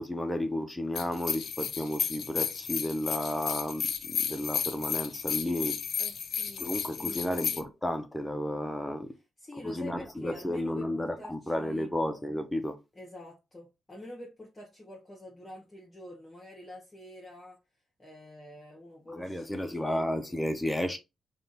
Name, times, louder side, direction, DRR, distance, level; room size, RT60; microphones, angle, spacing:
voice 1, 0.0-5.8 6.6-9.1 9.5-12.8 19.1-21.0, left 1 dB, 10° left, 0.7 m, -32 dB
sound 1, 1.0-7.6, left 8 dB, 65° left, 0.6 m, -33 dB
voice 2, 6.0-7.3 9.4-11.9 12.9-17.6 18.0-20.1, left 1 dB, 25° left, 1.3 m, -47 dB
3.4 x 2.5 x 4.0 m
cardioid pair, 65°, 0 cm